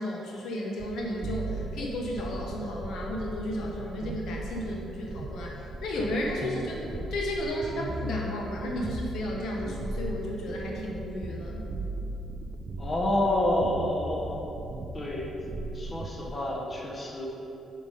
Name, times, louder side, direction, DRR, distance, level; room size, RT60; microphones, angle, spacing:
voice 1, 0.0-11.7, left 1 dB, 75° left, -1 dB, 0.9 m, -33 dB
sound 1, 0.8-16.3, right 2 dB, 45° right, 0.4 m, -37 dB
voice 2, 12.8-14.4 14.9-15.3 15.7-17.3, left 1 dB, 30° left, -2 dB, 1.2 m, -28 dB
5.9 x 5.3 x 5.0 m, 3.0 s
cardioid pair, 90°, 0 cm